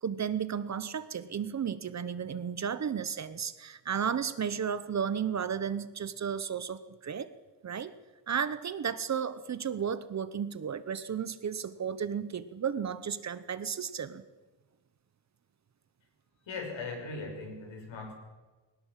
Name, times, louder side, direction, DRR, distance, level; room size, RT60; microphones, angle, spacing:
voice 1, 0.0-7.3 7.6-7.9 8.3-14.2, right 7 dB, 40° right, 13 dB, 0.9 m, -33 dB
voice 2, 16.4-18.1, left 3 dB, 80° left, 3 dB, 5.7 m, -39 dB
20.5 x 19.0 x 7.5 m, 1.2 s
wide cardioid pair, 160°, 45 cm